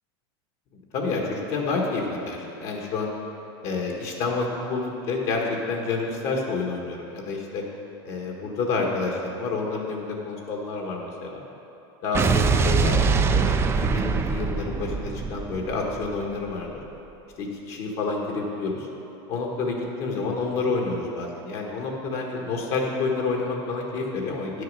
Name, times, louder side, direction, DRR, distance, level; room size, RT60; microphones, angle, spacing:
voice 1, 0.9-3.1 3.6-7.6 8.0-11.4 12.0-16.8 17.4-18.9 19.3-24.6, left 3 dB, 50° left, 0 dB, 1.4 m, -29 dB
Explosion, 12.1-16.5, right 5 dB, 20° right, 0.4 m, -23 dB
9.3 x 6.6 x 5.4 m, 2.9 s
supercardioid pair, 135°, 14 cm